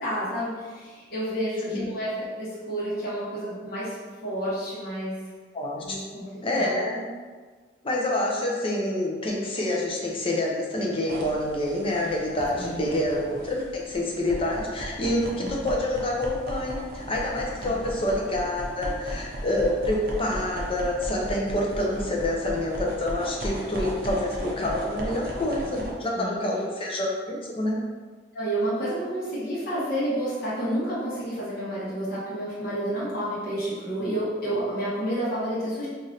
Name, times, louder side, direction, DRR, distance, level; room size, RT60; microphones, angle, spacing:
voice 1, 0.0-4.0 4.2-5.2 5.8-6.2 6.5-6.7 12.5-12.9 15.4-15.6 17.5-17.8 26.1-26.4 28.3-35.9, right 1 dB, 50° left, -9 dB, 1.1 m, -30 dB
voice 2, 5.5-6.0 6.4-7.0 7.8-27.8, left 1 dB, 30° left, -2 dB, 0.6 m, -27 dB
sound 1, 11.1-25.9, right 1 dB, 50° right, 0.7 m, -36 dB
3.1 x 2.6 x 4.0 m, 1.5 s
head